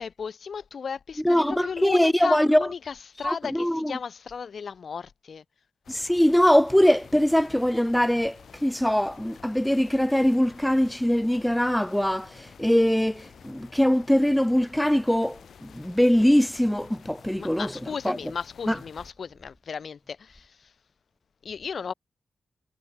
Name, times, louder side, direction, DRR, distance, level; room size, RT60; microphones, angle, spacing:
voice 1, 0.0-5.4 17.4-20.5 21.4-21.9, left 6 dB, 55° left, 1.3 m, -35 dB
voice 2, 1.2-2.7 3.2-4.0 5.9-18.2 18.7-18.8, equal, 5° left, 0.4 m, -22 dB
sound 1, 5.8-19.1, left 7 dB, 85° left, 2.1 m, -51 dB
wide cardioid pair, 160°, 0 cm